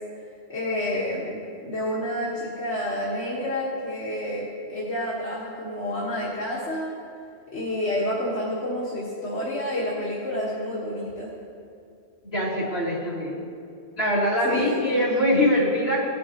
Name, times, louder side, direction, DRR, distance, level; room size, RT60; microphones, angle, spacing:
voice 1, 0.5-4.4 4.7-6.9 7.5-11.3 14.4-15.0, left 1 dB, 80° left, -8 dB, 1.8 m, -29 dB
voice 2, 12.3-13.5 14.0-16.0, left 1 dB, 60° left, -7 dB, 2.5 m, -23 dB
16.5 x 6.3 x 2.9 m, 2.4 s
omnidirectional pair, 1.2 m